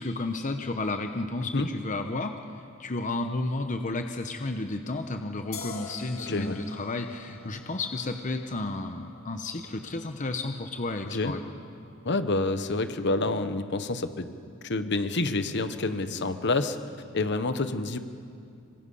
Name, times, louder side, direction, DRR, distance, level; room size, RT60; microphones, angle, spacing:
voice 1, 0.0-2.4 2.8-11.4, left 2 dB, 35° left, 6 dB, 0.9 m, -32 dB
sound 1, 5.5-12.8, left 4 dB, 75° left, 2.0 m, -47 dB
voice 2, 6.3-6.6 11.1-11.3 12.0-14.3 14.6-16.8 17.1-18.0, left 2 dB, 55° left, 10 dB, 1.1 m, -28 dB
26.5 x 24.0 x 5.6 m, 2.4 s
head